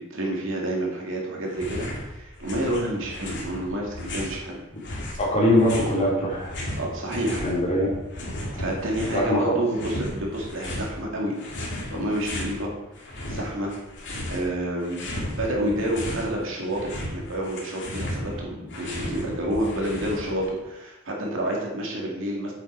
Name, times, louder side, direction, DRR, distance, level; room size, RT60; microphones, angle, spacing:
voice 1, 0.0-4.6 6.8-7.4 8.5-11.4 11.9-12.7 13.3-13.7 14.3-22.5, right 1 dB, 70° right, -1 dB, 2.5 m, -29 dB
sound 1, 1.5-2.0 2.3-4.4 4.8-7.5 7.8-9.3 9.7-10.9 11.4-12.5 12.9-14.5 14.8-16.3 16.6-20.5, left 1 dB, 60° left, 2.5 m, -34 dB
voice 2, 5.2-6.6 7.4-7.9 8.5-8.6 9.0-9.6 11.9-12.1, left 1 dB, 35° left, -4 dB, 3.2 m, -22 dB
8.3 x 7.9 x 4.7 m, 0.98 s
head